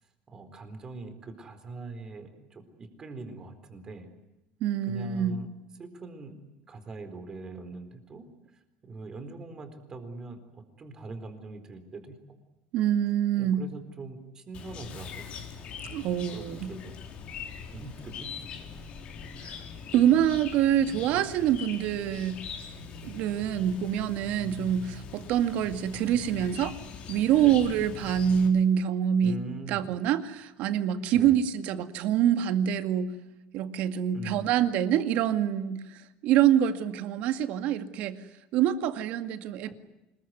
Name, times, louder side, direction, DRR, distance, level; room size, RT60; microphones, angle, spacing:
voice 1, 0.3-4.1 4.9-5.5 5.8-6.4 6.7-8.2 8.8-12.4 13.4-15.3 15.8-16.0 16.3-17.0 17.7-18.4 27.4-27.7 29.2-29.8 31.1-31.4 34.1-34.5, right 3 dB, 25° right, 8 dB, 4.2 m, -42 dB
voice 2, 4.6-5.4 12.7-13.6 15.9-16.7 19.4-19.5 19.9-22.4 23.0-26.7 27.1-29.4 29.7-33.1 33.5-38.2 38.5-39.7, right 10 dB, 55° right, 10 dB, 2.1 m, -25 dB
Chirp tweet, 14.5-28.5, left 5 dB, 40° left, 4.1 m, -42 dB
26.0 x 22.0 x 9.5 m, 0.96 s
cardioid pair, 160°, 3 cm